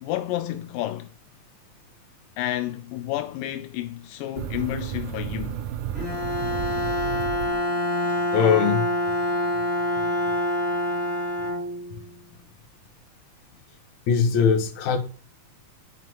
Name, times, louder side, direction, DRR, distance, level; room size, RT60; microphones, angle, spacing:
voice 1, 0.0-1.1 2.4-5.6, left 14 dB, 85° left, 2.2 m, -30 dB
sound 1, 4.4-8.1, right 11 dB, 80° right, 1.9 m, -33 dB
Bowed string instrument, 5.9-12.1, left 1 dB, 20° left, 3.1 m, -26 dB
voice 2, 8.3-8.8 14.1-15.0, left 6 dB, 65° left, 2.5 m, -20 dB
9.2 x 5.9 x 3.1 m
omnidirectional pair, 3.8 m